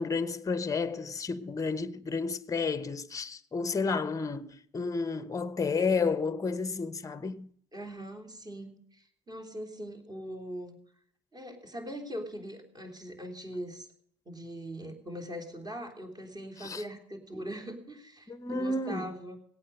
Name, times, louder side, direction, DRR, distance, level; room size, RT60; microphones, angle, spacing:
voice 1, 0.0-7.5 16.6-16.8 18.3-19.1, left 4 dB, 20° left, 0.9 m, -31 dB
voice 2, 7.7-10.7 11.3-13.9 14.2-19.4, equal, 25° right, 3.4 m, -41 dB
17.5 x 8.6 x 6.6 m
supercardioid pair, 90°, 16 cm